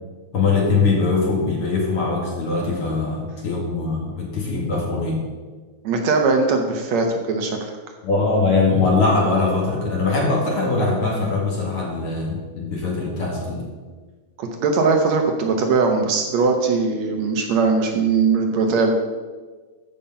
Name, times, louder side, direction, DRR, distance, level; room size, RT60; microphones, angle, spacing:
voice 1, 0.3-5.2 8.0-13.6, left 3 dB, 45° left, -2 dB, 2.9 m, -21 dB
voice 2, 5.8-7.7 14.4-18.9, right 4 dB, 70° right, 3 dB, 2.0 m, -20 dB
14.0 x 5.4 x 5.7 m, 1.4 s
omnidirectional pair, 3.5 m